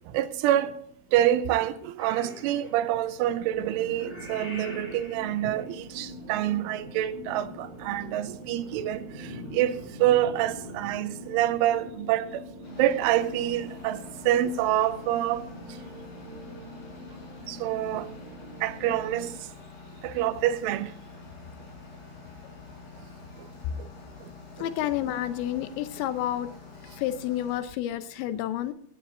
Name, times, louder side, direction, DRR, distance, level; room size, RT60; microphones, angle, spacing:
voice 1, 0.1-0.8 1.1-12.4 12.8-15.4 17.5-18.1 18.6-19.3 20.0-20.9 23.8-23.9 24.6-24.7, right 12 dB, 85° right, 3.2 m, -27 dB
Purr / Meow, 2.0-11.9, equal, 10° left, 5.2 m, -46 dB
sound 1, 3.3-19.4, equal, 60° right, 4.3 m, -44 dB
sound 2, 12.6-27.6, left 4 dB, 50° left, 6.6 m, -47 dB
voice 2, 24.6-26.5 26.8-28.7, left 12 dB, 80° left, 2.8 m, -30 dB
16.5 x 13.5 x 2.6 m
omnidirectional pair, 5.6 m